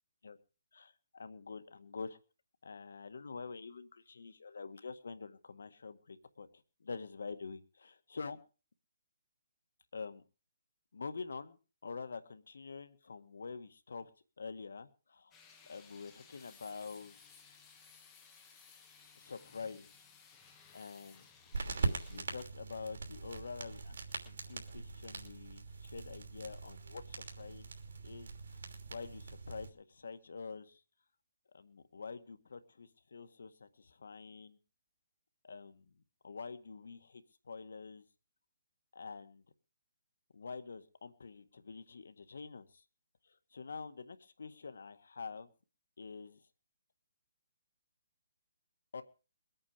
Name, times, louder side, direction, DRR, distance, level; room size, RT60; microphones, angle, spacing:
voice 1, 0.7-2.2 2.6-8.4 9.9-10.2 10.9-11.6 11.8-14.1 14.4-15.3 15.7-17.2 19.2-19.9 20.7-21.3 21.7-24.0 24.3-27.7 28.0-28.6 28.9-30.8 31.5-34.6 35.4-38.0 38.9-39.4 40.3-42.8 43.3-45.5 46.0-46.4 48.9-49.0, left 4 dB, 80° left, 10 dB, 1.8 m, -46 dB
sound 1, 15.3-22.2, left 6 dB, 15° left, 1.4 m, -60 dB
sound 2, 21.5-29.7, right 4 dB, 65° right, 2.9 m, -42 dB
22.0 x 8.9 x 5.1 m, 0.35 s
hypercardioid pair, 165°, 0 cm